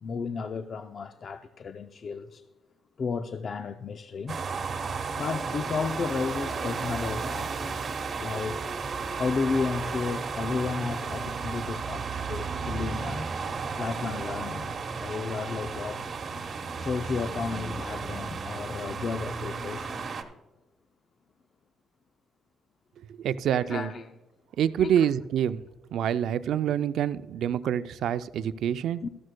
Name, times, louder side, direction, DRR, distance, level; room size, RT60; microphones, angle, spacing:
voice 1, 0.0-2.5 3.0-4.4 5.2-8.6 9.2-13.3 13.8-14.7 15.0-16.1 16.8-20.1 23.5-24.1 24.8-25.1 29.0-29.1, left 5 dB, 50° left, 0.5 m, -33 dB
sound 1, 4.3-20.2, right 5 dB, 45° right, 1.1 m, -33 dB
voice 2, 23.2-23.9 24.6-25.6 25.9-29.0, right 9 dB, 75° right, 0.4 m, -26 dB
14.0 x 12.5 x 2.2 m
cardioid pair, 90°, 0 cm